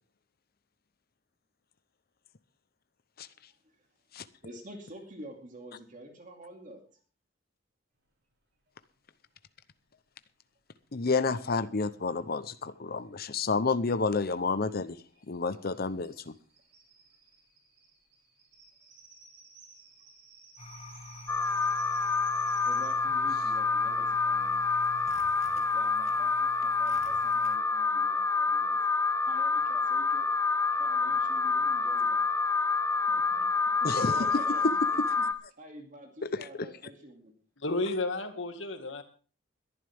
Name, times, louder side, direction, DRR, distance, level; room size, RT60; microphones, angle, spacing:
voice 1, 4.4-6.8 22.6-24.6 25.5-28.8 29.2-30.2 30.8-32.2 33.1-33.5 33.8-34.7 35.2-35.3 35.5-37.3, right 1 dB, 45° right, 3 dB, 2.6 m, -48 dB
voice 2, 10.9-15.0 15.3-16.3 33.8-34.3, left 4 dB, 50° left, 12 dB, 0.8 m, -30 dB
sound 1, 13.2-13.3 13.6-13.7 13.9-22.9, right 4 dB, 65° right, 6.1 m, -55 dB
sound 2, 20.6-27.6, left 3 dB, 35° left, 2.4 m, -47 dB
Alarm, 21.3-35.3, left 4 dB, 15° left, 0.9 m, -27 dB
voice 3, 37.6-39.0, left 2 dB, 75° left, 7 dB, 2.1 m, -32 dB
21.0 x 11.0 x 3.6 m, 0.38 s
head